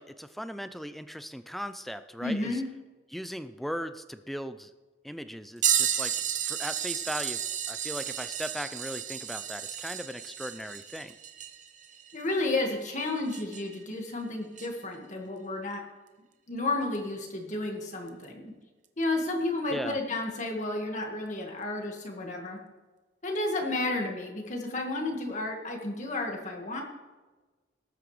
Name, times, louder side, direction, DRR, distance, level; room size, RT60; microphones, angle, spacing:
voice 1, 0.0-2.6 3.1-4.7 5.0-6.1 6.4-11.1 19.7-20.0, equal, ahead, 11 dB, 0.4 m, -38 dB
voice 2, 2.2-2.7 12.1-15.8 16.5-18.5 19.0-22.6 23.2-26.8, left 2 dB, 40° left, 1 dB, 1.9 m, -32 dB
sound 1, 5.6-13.8 14.6-14.7 16.9-17.0 18.1-18.2 19.3-19.4, right 9 dB, 40° right, 0.9 m, -32 dB
19.0 x 8.9 x 3.3 m, 1.2 s
head